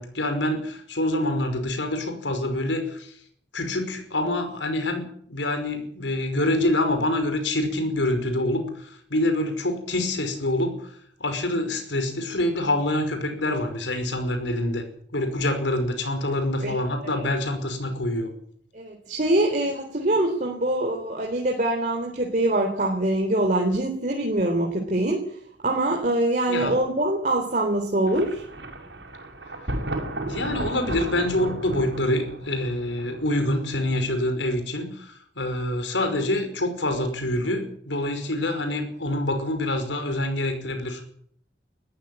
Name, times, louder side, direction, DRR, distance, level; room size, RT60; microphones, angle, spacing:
voice 1, 0.0-3.1 3.5-10.9 11.2-14.8 15.1-18.3 26.5-26.8 30.3-41.0, left 1 dB, 85° left, 6 dB, 5.3 m, -26 dB
voice 2, 18.7-25.2 25.6-28.4, right 1 dB, 45° right, 1 dB, 3.7 m, -24 dB
Thunder, 28.1-33.9, right 1 dB, 70° right, 5.8 m, -34 dB
21.5 x 14.5 x 9.1 m, 0.65 s
head